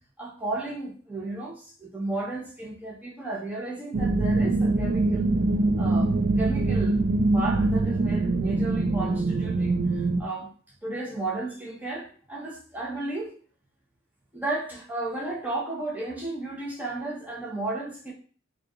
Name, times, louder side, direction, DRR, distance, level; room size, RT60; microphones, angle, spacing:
voice 1, 0.2-5.3 5.8-7.0 7.3-10.5 10.8-13.4 14.3-18.1, right 2 dB, 10° right, -4 dB, 0.9 m, -33 dB
sound 1, 3.9-10.2, right 2 dB, 45° right, 0.4 m, -23 dB
4.7 x 2.4 x 3.0 m, 0.43 s
head